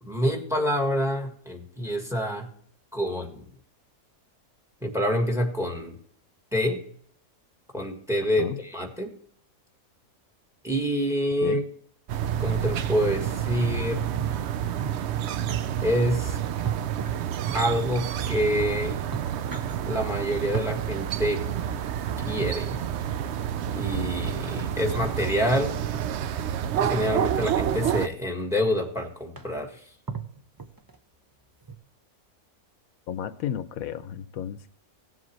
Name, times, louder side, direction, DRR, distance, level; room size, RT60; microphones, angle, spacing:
voice 1, 0.0-2.5 2.9-3.4 4.8-6.0 6.5-6.8 7.7-9.1 10.6-11.6 12.4-14.1 15.8-16.4 17.5-19.0 19.8-21.4 22.2-22.8 23.7-25.8 26.8-29.8, equal, ahead, 4 dB, 1.6 m, -27 dB
sound 1, 12.1-28.1, right 10 dB, 65° right, 0.7 m, -29 dB
sound 2, 14.1-15.6 16.6-17.9 18.6-18.7 19.0-19.8 20.5-20.7 22.2-22.7 24.8-25.3 25.9-26.3 27.3-27.9 28.6-28.7 29.0-29.1 29.4-29.7 30.1-31.0 31.6-31.7, right 6 dB, 25° right, 0.5 m, -37 dB
voice 2, 33.1-34.7, left 9 dB, 80° left, 12 dB, 1.1 m, -32 dB
17.0 x 7.7 x 3.1 m, 0.62 s
omnidirectional pair, 1.5 m